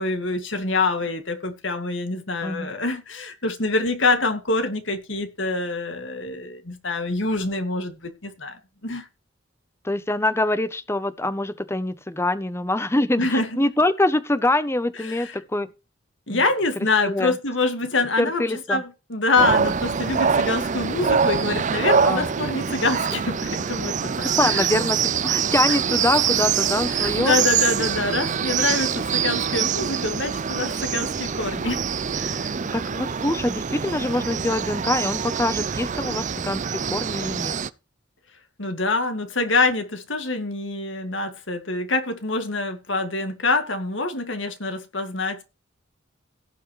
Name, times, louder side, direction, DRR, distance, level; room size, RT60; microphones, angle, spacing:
voice 1, 0.0-9.1 13.2-13.5 15.0-15.3 16.3-18.4 18.7-24.7 25.7-25.8 26.9-31.8 32.1-32.5 38.6-45.4, left 3 dB, 70° left, 2.2 m, -25 dB
voice 2, 2.4-2.7 9.8-15.7 16.3-16.4 17.0-17.4 18.2-18.8 22.0-22.3 24.4-27.4 32.7-37.6, left 2 dB, 15° left, 0.8 m, -24 dB
sound 1, 19.4-37.7, right 7 dB, 40° right, 0.5 m, -24 dB
17.0 x 7.4 x 3.2 m
head